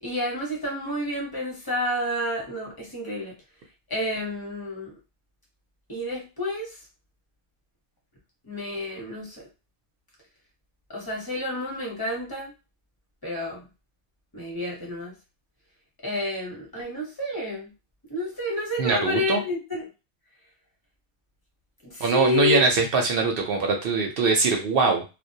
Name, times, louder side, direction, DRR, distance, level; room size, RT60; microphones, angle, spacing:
voice 1, 0.0-3.3 3.9-4.9 5.9-6.8 8.4-9.4 10.9-12.5 13.2-13.6 14.3-15.1 16.0-17.7 18.1-19.8 21.8-22.7, left 1 dB, 20° left, -3 dB, 0.8 m, -29 dB
voice 2, 18.8-19.4 22.0-25.0, right 4 dB, 60° right, 2 dB, 0.7 m, -22 dB
2.2 x 2.1 x 2.6 m, 0.29 s
omnidirectional pair, 1.2 m